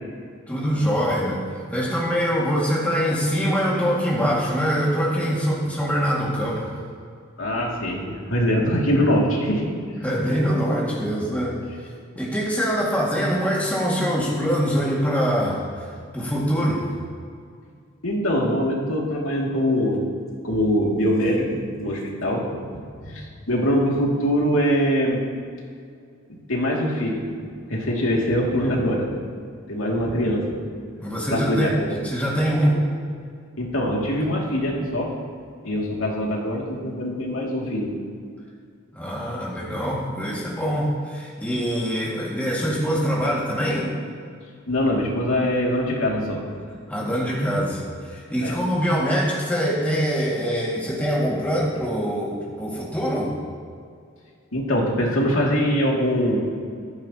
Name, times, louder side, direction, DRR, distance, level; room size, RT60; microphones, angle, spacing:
voice 1, 0.5-6.7 10.0-11.6 12.2-15.9 16.1-16.8 31.0-31.7 32.0-32.8 38.9-43.9 46.9-53.3, equal, 10° left, -6 dB, 2.0 m, -24 dB
voice 2, 7.4-9.6 18.0-20.0 20.4-22.5 23.0-25.2 26.3-27.3 27.7-29.1 29.7-30.6 31.3-32.0 33.6-35.1 35.6-38.0 44.7-46.4 48.4-48.6 54.5-56.4, equal, 85° left, -2 dB, 2.4 m, -23 dB
14.5 x 14.0 x 2.9 m, 2.3 s
head